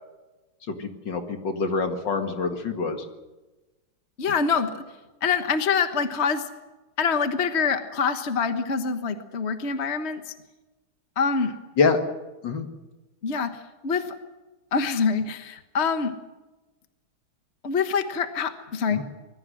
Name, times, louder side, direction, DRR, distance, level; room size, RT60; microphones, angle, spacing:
voice 1, 0.7-3.0 11.8-12.0 12.4-12.7 18.9-19.0, left 4 dB, 55° left, 5 dB, 2.5 m, -25 dB
voice 2, 4.2-4.8 5.2-6.5 7.0-10.3 11.2-11.5 13.2-14.2 14.7-16.1 17.6-19.0, left 5 dB, 35° left, 8 dB, 1.2 m, -25 dB
24.5 x 21.0 x 6.4 m, 1.1 s
omnidirectional pair, 2.4 m